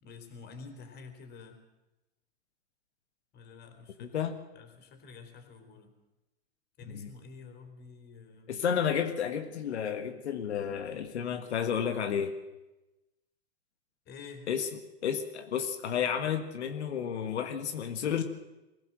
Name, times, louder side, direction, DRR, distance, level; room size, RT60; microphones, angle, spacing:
voice 1, 0.0-1.6 3.3-4.2 4.5-5.9 6.8-8.5 14.1-14.5, left 4 dB, 30° left, 6 dB, 4.2 m, -49 dB
voice 2, 4.0-4.4 6.9-7.1 8.5-12.3 14.5-18.2, left 8 dB, 85° left, 6 dB, 1.9 m, -31 dB
22.5 x 16.0 x 7.6 m, 1.0 s
hypercardioid pair, 125°, 32 cm